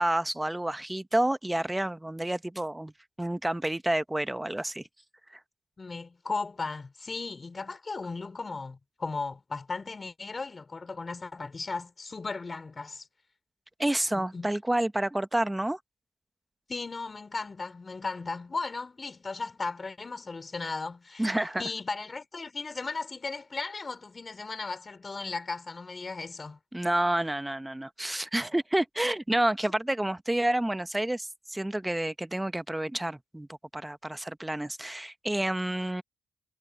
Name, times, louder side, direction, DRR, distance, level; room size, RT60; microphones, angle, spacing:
voice 1, 0.0-2.9 3.2-4.9 5.3-5.4 13.8-15.8 21.2-21.6 26.7-36.0, right 1 dB, 10° right, 1.0 m, -29 dB
voice 2, 5.8-13.1 14.1-14.5 16.7-26.6, left 4 dB, 35° left, 4.6 m, -36 dB
cardioid pair, 70°, 0 cm